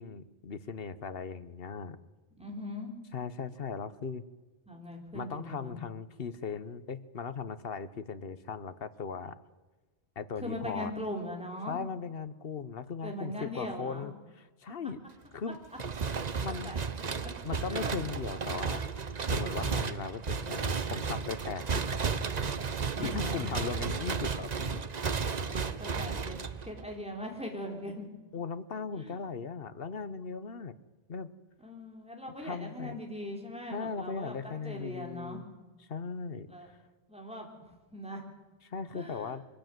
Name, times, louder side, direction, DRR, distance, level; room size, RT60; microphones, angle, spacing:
voice 1, 0.0-2.0 3.1-4.2 5.1-9.4 10.2-10.9 11.7-15.0 15.3-15.6 16.4-16.7 17.4-18.8 19.3-22.0 23.0-24.9 28.3-30.7 31.1-31.3 32.4-33.0 33.7-35.4 35.9-36.7 38.6-39.4, left 5 dB, 65° left, 14 dB, 1.2 m, -38 dB
voice 2, 2.4-2.9 4.7-5.8 10.4-11.8 13.0-14.1 16.5-16.8 17.7-17.9 18.7-18.9 22.9-23.5 25.5-26.4 26.6-28.1 29.0-29.2 31.6-35.4 36.5-36.7 37.1-37.5 37.9-38.2 38.9-39.3, left 1 dB, 5° right, 1 dB, 4.0 m, -40 dB
sound 1, 15.8-27.0, right 5 dB, 45° right, 1.0 m, -33 dB
23.5 x 15.5 x 9.3 m, 1.2 s
omnidirectional pair, 1.0 m